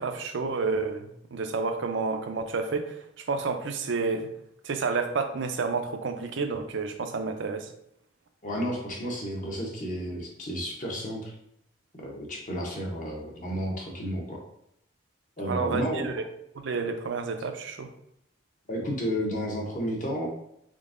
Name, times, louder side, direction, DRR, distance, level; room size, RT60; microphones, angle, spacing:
voice 1, 0.0-4.3 4.6-7.7 15.5-16.1 16.6-17.9, right 4 dB, 75° right, 6 dB, 0.5 m, -30 dB
voice 2, 8.4-11.3 12.0-14.4 15.4-16.2 18.7-20.3, equal, 40° left, -1 dB, 0.8 m, -32 dB
3.7 x 3.5 x 2.5 m, 0.77 s
head